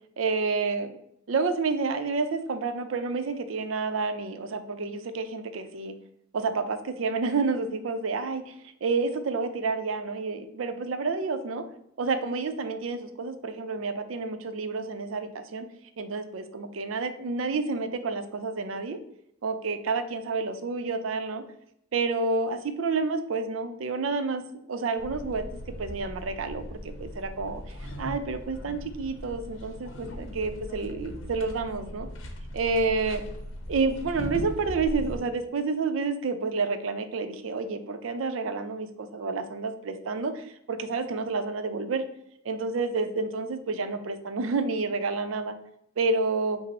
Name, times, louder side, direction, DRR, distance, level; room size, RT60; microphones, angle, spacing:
voice 1, 0.2-0.9 1.3-5.9 6.3-8.4 8.8-11.6 12.0-15.7 16.0-19.0 19.4-21.4 21.9-24.4 24.7-25.5 25.8-26.6 27.0-27.6 28.0-32.1 32.5-33.2 33.7-42.0 42.5-45.5 46.0-46.6, right 4 dB, 85° right, 9 dB, 0.5 m, -29 dB
sound 1, 25.0-35.2, equal, 75° left, 0.7 m, -39 dB
5.1 x 2.0 x 4.1 m, 0.77 s
head